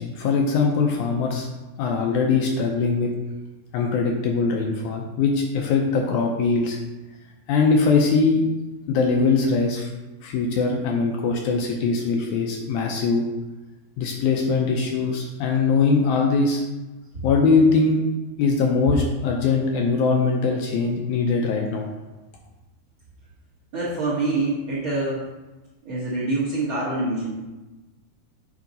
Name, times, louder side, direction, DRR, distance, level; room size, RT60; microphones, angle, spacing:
voice 1, 0.0-1.5 1.8-3.1 3.7-6.8 7.5-8.4 8.9-9.9 10.2-13.3 14.0-16.6 17.2-18.0 18.4-21.9, left 4 dB, 80° left, 1 dB, 1.9 m, -21 dB
voice 2, 23.7-25.2 25.8-27.4, right 2 dB, 55° right, -7 dB, 1.5 m, -25 dB
7.3 x 4.9 x 3.9 m, 1.1 s
omnidirectional pair, 3.9 m